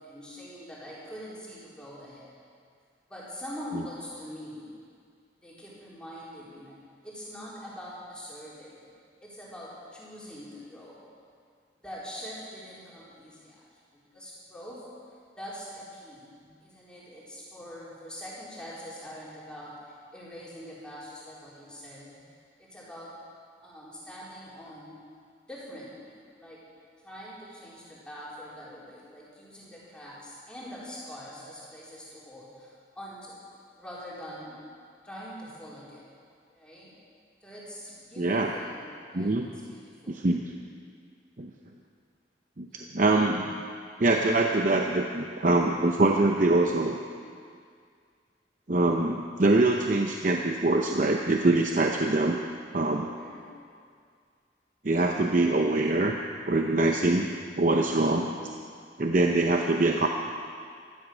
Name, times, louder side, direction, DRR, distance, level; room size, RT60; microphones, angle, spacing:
voice 1, 0.0-2.3 3.1-4.7 5.4-6.8 7.0-8.9 9.2-11.0 11.8-13.6 13.9-14.9 15.4-16.3 16.6-22.3 22.6-23.2 23.6-25.0 25.5-26.6 27.0-33.4 33.8-34.6 35.0-36.1 36.5-36.9 37.4-39.4 39.7-40.3 53.2-53.5 58.0-58.4, equal, 5° left, -8 dB, 4.0 m, -44 dB
voice 2, 38.2-38.5 39.1-39.5 40.1-40.5 41.4-41.5 42.6-43.5 44.0-47.0 48.7-52.4 52.7-53.1 54.8-56.2 56.5-57.3 57.6-58.3 59.0-60.1, right 2 dB, 45° right, 2 dB, 0.7 m, -24 dB
16.0 x 13.0 x 6.3 m, 2.2 s
head